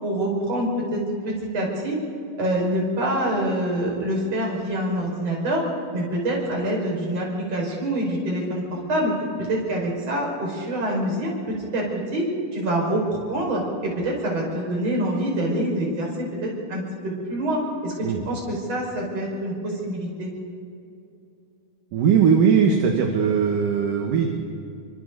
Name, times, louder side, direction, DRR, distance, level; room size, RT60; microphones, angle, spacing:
voice 1, 0.0-2.0 2.4-5.6 5.9-9.1 9.5-11.8 12.1-12.3 12.5-20.3, right 1 dB, 40° right, -2 dB, 6.6 m, -26 dB
voice 2, 21.9-24.3, right 6 dB, 65° right, 1 dB, 3.0 m, -19 dB
28.5 x 24.5 x 4.1 m, 2.6 s
omnidirectional pair, 4.4 m